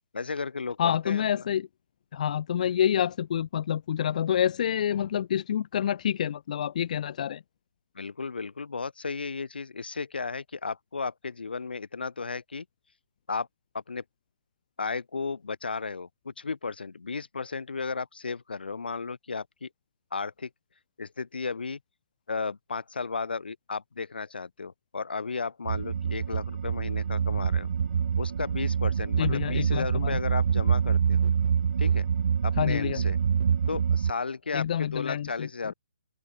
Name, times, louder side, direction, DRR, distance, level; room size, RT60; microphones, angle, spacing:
voice 1, 0.1-1.5 7.9-12.7 13.3-13.5 13.7-14.0 14.8-19.7 20.1-20.5 21.0-21.8 22.3-27.7 28.2-31.3 31.8-32.1 32.4-33.2 33.7-35.7, left 4 dB, 75° left, 2.2 m, -34 dB
voice 2, 0.8-1.7 2.1-7.4 29.2-30.2 32.6-33.0 34.5-35.5, left 9 dB, 50° left, 1.0 m, -27 dB
sound 1, 25.6-34.1, right 7 dB, 60° right, 0.4 m, -26 dB
open air
figure-of-eight pair, 140°, 5 cm